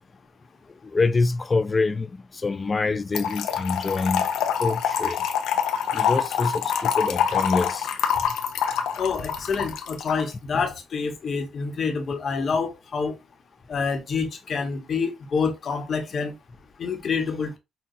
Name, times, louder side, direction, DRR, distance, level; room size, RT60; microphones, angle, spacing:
voice 1, 0.9-4.3 4.6-5.2 5.9-7.9, left 3 dB, 30° left, 0.3 m, -25 dB
Trickle dribble / Fill (with liquid), 3.1-10.2, left 8 dB, 85° left, 0.6 m, -25 dB
voice 2, 9.0-13.1 13.7-16.3 16.8-17.6, left 5 dB, 55° left, 1.1 m, -27 dB
5.7 x 2.3 x 2.7 m
cardioid pair, 90°, 0 cm